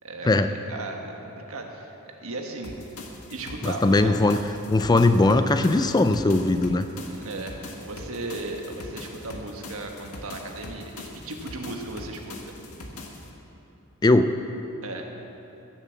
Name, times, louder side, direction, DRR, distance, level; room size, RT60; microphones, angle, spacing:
voice 1, 0.0-1.9 2.2-2.7 3.3-4.1 7.1-12.5 14.8-15.1, right 2 dB, 65° right, 2 dB, 1.5 m, -36 dB
sound 1, 2.6-13.3, left 2 dB, 90° left, 1.7 m, -41 dB
voice 2, 3.6-4.4 4.7-6.9 14.0-14.3, left 2 dB, 20° left, 9 dB, 0.4 m, -19 dB
15.5 x 7.4 x 7.1 m, 3.0 s
head